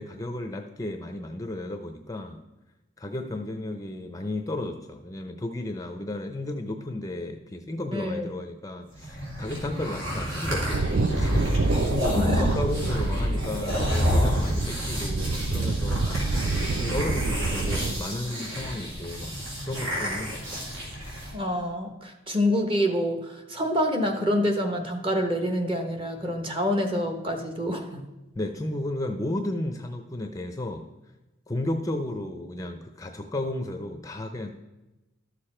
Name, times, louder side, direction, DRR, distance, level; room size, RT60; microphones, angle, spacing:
voice 1, 0.0-2.4 3.0-16.1 16.7-19.3 19.6-20.6 28.3-30.8 31.5-34.5, left 1 dB, 15° left, 5 dB, 0.6 m, -33 dB
voice 2, 7.9-8.3 12.1-12.5 21.3-28.0, equal, 25° right, 5 dB, 1.2 m, -27 dB
sound 1, 8.9-21.3, equal, 70° right, 3.2 m, -29 dB
sound 2, 10.7-18.0, right 3 dB, 50° right, 0.4 m, -28 dB
12.5 x 6.8 x 4.4 m, 1.0 s
head